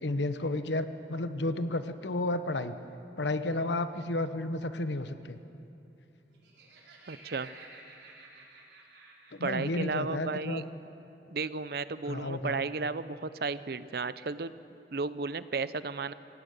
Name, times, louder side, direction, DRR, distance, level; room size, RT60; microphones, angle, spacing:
voice 1, 0.0-2.7 3.2-5.4 9.3-10.7 12.1-12.6, left 2 dB, 85° left, 10 dB, 1.0 m, -32 dB
Laughter, 6.2-10.0, right 3 dB, 85° right, 4.6 m, -53 dB
voice 2, 7.1-7.5 9.4-10.6 11.3-14.5 14.9-16.1, right 4 dB, 60° right, 14 dB, 0.6 m, -34 dB
26.5 x 17.0 x 6.7 m, 2.9 s
head